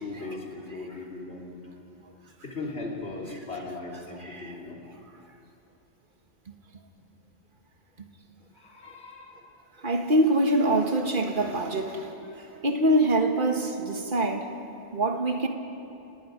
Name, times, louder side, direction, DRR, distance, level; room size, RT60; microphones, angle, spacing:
voice 1, 0.0-1.6 2.4-4.8 8.5-9.4 12.5-12.7, left 3 dB, 60° left, -2 dB, 3.5 m, -38 dB
voice 2, 9.8-12.1 12.6-14.5 14.9-15.5, right 1 dB, 45° right, 4 dB, 1.7 m, -24 dB
27.5 x 19.0 x 5.2 m, 2.8 s
omnidirectional pair, 1.2 m